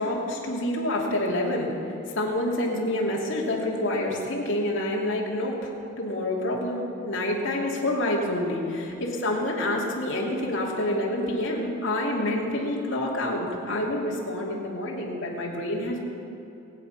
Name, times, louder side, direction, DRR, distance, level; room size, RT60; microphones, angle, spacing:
voice 1, 0.0-16.0, left 1 dB, 60° left, -3 dB, 3.0 m, -28 dB
22.0 x 9.3 x 5.6 m, 3.0 s
head